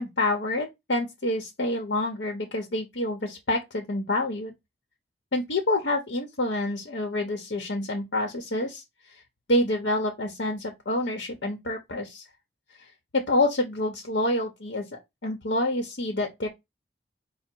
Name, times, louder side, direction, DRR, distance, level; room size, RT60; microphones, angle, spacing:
voice 1, 0.0-4.5 5.3-8.8 9.5-12.2 12.8-12.9 13.1-14.9 15.2-16.5, left 1 dB, 80° left, 0.9 m, -27 dB
5.0 x 2.1 x 4.4 m
head